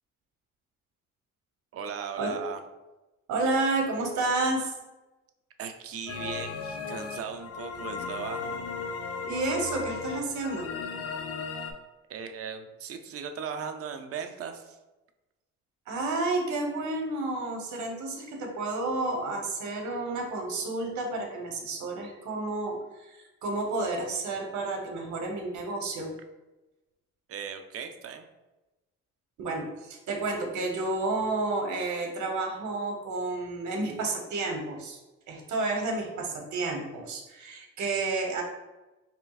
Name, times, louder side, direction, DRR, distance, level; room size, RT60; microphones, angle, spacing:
voice 1, 1.7-2.6 5.6-8.5 12.1-14.8 27.3-28.3, right 6 dB, 50° right, 7 dB, 0.5 m, -38 dB
voice 2, 3.3-4.7 9.2-10.7 15.9-26.1 29.4-35.0 35.3-38.4, right 2 dB, 70° right, 2 dB, 1.0 m, -31 dB
sound 1, 6.1-11.7, left 5 dB, 55° left, 0.6 m, -36 dB
4.3 x 3.3 x 2.3 m, 1.1 s
cardioid pair, 90°, 30 cm